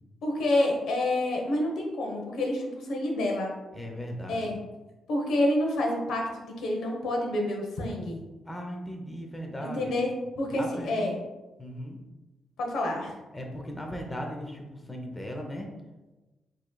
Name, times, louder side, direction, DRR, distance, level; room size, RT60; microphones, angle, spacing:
voice 1, 0.2-3.5 4.3-4.6 5.1-8.2 9.6-10.1 10.4-11.2 12.6-13.1, left 1 dB, 85° left, 0 dB, 0.9 m, -28 dB
voice 2, 3.7-4.6 8.4-9.9 10.5-10.9 11.6-12.0 13.3-15.7, equal, 10° left, 2 dB, 0.5 m, -37 dB
6.8 x 3.1 x 2.2 m, 1.1 s
wide cardioid pair, 155°, 0 cm